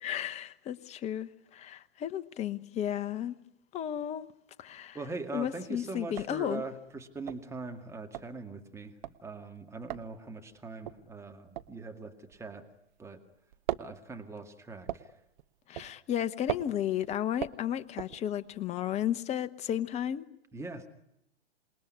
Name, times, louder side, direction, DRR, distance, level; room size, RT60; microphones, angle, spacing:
voice 1, 0.0-3.4 3.7-4.3 4.6-5.0 5.3-6.6 15.7-20.2, left 10 dB, 20° left, 1.0 m, -33 dB
sound 1, 4.8-5.3 5.6-5.7 6.0-13.1 13.3-18.7, right 13 dB, 45° right, 1.1 m, -40 dB
voice 2, 4.9-8.9 9.2-12.7 13.0-13.2 13.8-15.1 20.5-20.9, right 3 dB, 10° right, 2.1 m, -41 dB
27.5 x 21.0 x 9.7 m
figure-of-eight pair, 105°, 32 cm